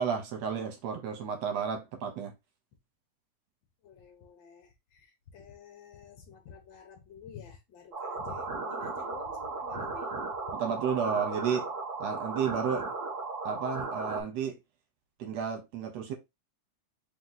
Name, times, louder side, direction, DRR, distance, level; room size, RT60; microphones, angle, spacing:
voice 1, 0.0-2.3 10.5-11.7 12.0-12.9 13.5-14.5 15.2-16.1, right 7 dB, 70° right, 1.8 m, -32 dB
voice 2, 3.8-10.2, left 6 dB, 75° left, 1.0 m, -50 dB
sound 1, 7.9-14.2, right 3 dB, 45° right, 1.0 m, -36 dB
4.5 x 2.8 x 3.9 m
omnidirectional pair, 3.5 m